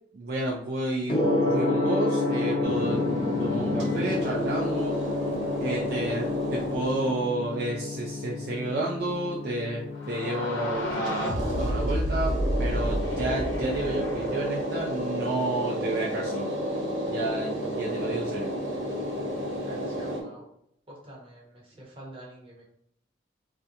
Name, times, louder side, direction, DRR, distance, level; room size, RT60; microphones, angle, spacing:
voice 1, 0.1-3.0 3.4-5.0 5.6-16.5 17.1-18.5, right 2 dB, 50° right, -3 dB, 0.4 m, -31 dB
Gong, 1.1-20.1, left 2 dB, 30° left, 0.6 m, -32 dB
sound 1, 2.6-7.3 10.9-20.2, equal, 80° right, 1.1 m, -31 dB
sound 2, 9.9-14.8, equal, 85° left, 0.6 m, -30 dB
voice 2, 19.6-20.4 20.9-22.7, right 1 dB, 30° right, -3 dB, 0.9 m, -47 dB
3.4 x 2.3 x 2.7 m, 0.71 s
head